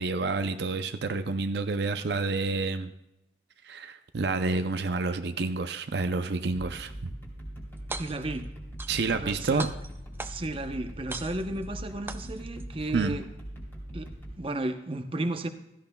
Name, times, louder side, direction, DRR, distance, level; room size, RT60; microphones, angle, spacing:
voice 1, 0.0-2.9 3.6-7.1 8.9-9.7 12.9-13.2, right 3 dB, 65° right, 8 dB, 0.5 m, -29 dB
sound 1, 6.5-14.3, equal, 15° left, 3.0 m, -41 dB
sound 2, 7.8-8.4 8.8-9.3 9.6-10.6 11.1-11.6 12.1-12.6, right 3 dB, 15° right, 0.4 m, -39 dB
voice 2, 8.0-8.5 9.1-9.6 10.2-13.2 13.9-14.1 14.4-15.5, right 2 dB, 30° right, 7 dB, 0.7 m, -33 dB
16.0 x 14.0 x 2.2 m, 0.90 s
head